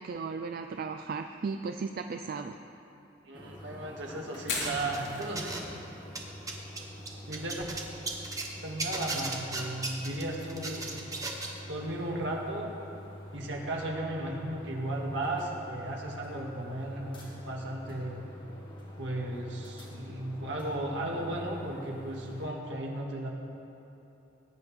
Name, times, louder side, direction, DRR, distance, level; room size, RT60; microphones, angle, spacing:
voice 1, 0.0-2.6, right 4 dB, 55° right, 7 dB, 0.4 m, -36 dB
sound 1, 3.3-22.5, left 1 dB, 30° left, 2.6 m, -46 dB
voice 2, 3.3-5.5 7.3-7.6 8.6-11.0 11.7-12.7 13.3-18.3 19.0-23.3, right 1 dB, 75° right, -1 dB, 1.8 m, -35 dB
Fire, 4.4-18.2, left 3 dB, 75° left, 3.3 m, -47 dB
sound 2, 4.6-5.8 6.1-8.5 8.8-11.6, right 3 dB, 20° right, 1.2 m, -36 dB
20.0 x 9.6 x 3.6 m, 3.0 s
head